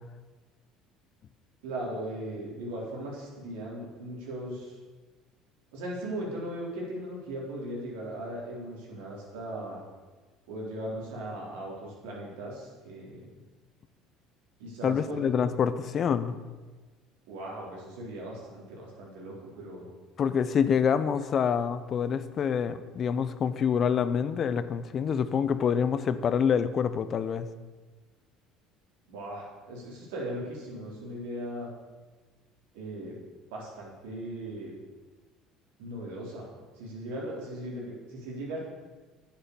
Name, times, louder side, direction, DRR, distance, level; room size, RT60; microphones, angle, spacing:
voice 1, 1.6-4.7 5.7-9.8 10.5-13.3 14.6-15.3 17.3-19.9 29.1-31.7 32.7-33.2 33.5-34.7 35.8-36.5 36.8-38.6, right 1 dB, 85° right, -3 dB, 4.0 m, -38 dB
voice 2, 14.8-16.4 20.2-27.5, left 7 dB, 45° left, 13 dB, 0.7 m, -26 dB
10.0 x 8.4 x 7.0 m, 1.3 s
supercardioid pair, 100°, 0 cm